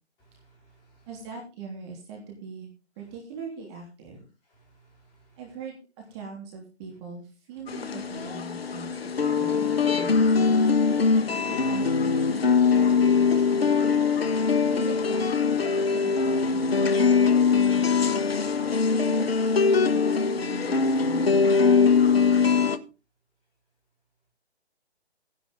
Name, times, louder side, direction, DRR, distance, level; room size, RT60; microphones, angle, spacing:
voice 1, 0.2-1.1 4.4-5.4, right 3 dB, 15° left, -2 dB, 4.9 m, -60 dB
voice 2, 1.1-2.7 3.0-4.2 5.4-10.8 11.3-13.4 14.4-18.3 18.9-22.1, right 5 dB, 25° right, 0 dB, 3.3 m, -42 dB
sound 1, 7.7-22.8, left 5 dB, 60° left, 1.2 m, -22 dB
14.5 x 10.5 x 3.7 m, 0.30 s
figure-of-eight pair, 145°, 33 cm